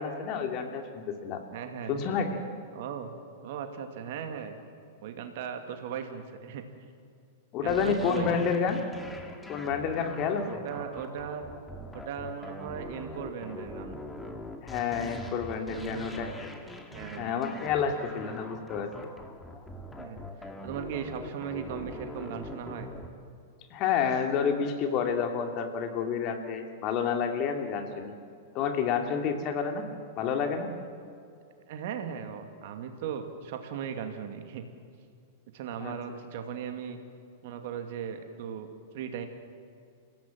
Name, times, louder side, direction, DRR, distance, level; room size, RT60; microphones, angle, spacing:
voice 1, 0.0-1.4 1.9-2.4 7.5-8.8 9.5-10.6 14.6-16.5 17.2-18.9 23.7-28.1 28.5-29.9 30.2-30.7 35.8-35.9, left 6 dB, 40° left, 4 dB, 2.7 m, -29 dB
voice 2, 1.5-2.0 2.7-3.1 3.4-4.6 5.0-6.7 7.6-8.3 10.5-11.5 11.9-14.0 15.7-16.4 16.9-17.3 20.0-22.9 30.2-30.5 31.7-34.6 35.5-37.0 37.4-38.7 38.9-39.3, right 8 dB, 50° right, 6 dB, 2.4 m, -38 dB
sound 1, 7.7-23.1, left 1 dB, 10° left, 2.3 m, -43 dB
29.5 x 16.5 x 7.6 m, 2.4 s
figure-of-eight pair, 95°, 0 cm